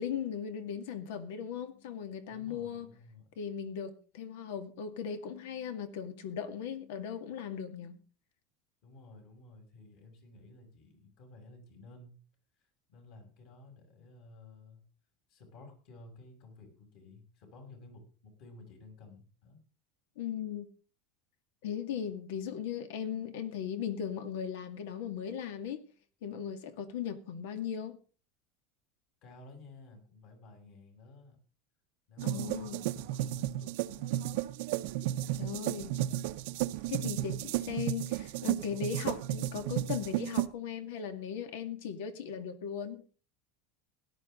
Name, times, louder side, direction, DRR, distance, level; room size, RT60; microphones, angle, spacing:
voice 1, 0.0-2.9 3.4-8.0 20.2-20.7 21.6-25.8 26.2-28.0 32.2-32.8 35.4-35.9 36.9-43.0, left 8 dB, 80° left, 2.1 m, -38 dB
voice 2, 2.3-3.2 8.8-12.2 12.9-14.8 15.3-19.6 29.2-31.4 32.1-34.1, left 2 dB, 50° left, 6.7 m, -54 dB
sound 1, 32.2-40.5, right 14 dB, 70° right, 0.7 m, -33 dB
17.5 x 12.0 x 3.8 m
supercardioid pair, 160°, 0 cm